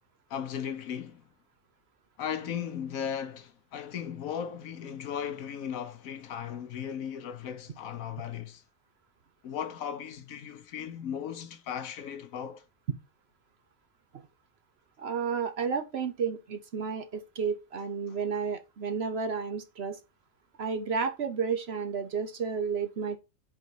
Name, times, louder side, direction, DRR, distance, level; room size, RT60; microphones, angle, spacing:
voice 1, 0.3-1.3 2.2-8.6 9.4-12.6 18.1-18.2, left 8 dB, 80° left, 1.3 m, -36 dB
voice 2, 15.0-20.0 20.6-23.2, right 6 dB, 55° right, 0.9 m, -32 dB
5.3 x 4.0 x 4.8 m
omnidirectional pair, 1.5 m